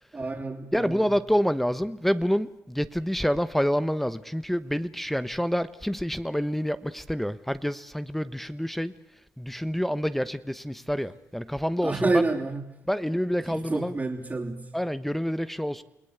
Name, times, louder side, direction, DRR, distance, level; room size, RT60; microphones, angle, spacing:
voice 1, 0.1-1.1 11.8-12.6 13.5-14.6, right 3 dB, 30° right, -3 dB, 3.5 m, -28 dB
voice 2, 0.7-8.9 9.4-12.2 12.9-14.0 14.7-15.8, equal, 5° left, 13 dB, 1.1 m, -27 dB
29.0 x 18.5 x 8.2 m, 0.83 s
cardioid pair, 65°, 6 cm